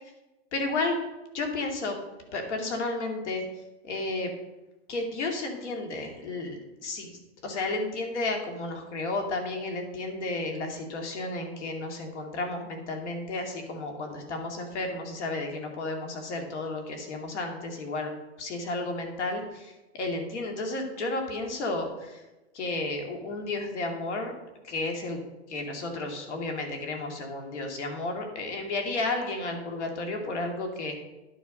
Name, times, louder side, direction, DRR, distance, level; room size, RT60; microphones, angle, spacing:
voice 1, 0.5-1.0 1.3-2.0 2.3-3.4 3.8-4.3 4.9-18.1 18.4-22.2 22.5-24.3 24.6-25.2 25.5-31.0, left 2 dB, 75° left, 4 dB, 2.7 m, -32 dB
11.0 x 7.2 x 5.3 m, 1.0 s
supercardioid pair, 165°, 35 cm